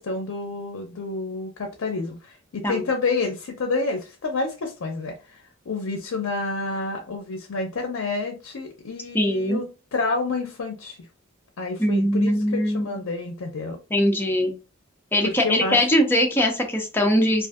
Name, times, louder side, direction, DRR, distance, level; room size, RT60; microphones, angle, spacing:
voice 1, 0.0-9.7 9.9-11.0 11.6-13.8 15.2-15.9, left 3 dB, 80° left, 3 dB, 0.5 m, -29 dB
voice 2, 9.1-9.6 11.8-12.9 13.9-14.5 15.1-17.5, equal, 10° left, 2 dB, 0.5 m, -21 dB
2.5 x 2.4 x 2.3 m, 0.31 s
head